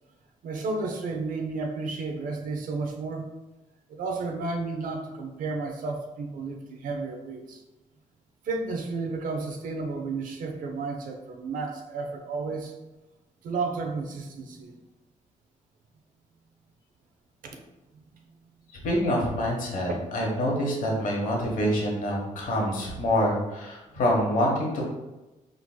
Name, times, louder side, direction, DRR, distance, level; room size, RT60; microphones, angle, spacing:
voice 1, 0.4-3.3 3.9-7.6 8.4-12.8 13.4-14.8 17.4-17.6 17.9-18.2 19.9-20.0, right 3 dB, 90° right, 4 dB, 0.6 m, -32 dB
voice 2, 18.8-24.8, equal, 75° left, -2 dB, 1.1 m, -26 dB
4.6 x 3.8 x 2.2 m, 1.1 s
cardioid pair, 125°, 14 cm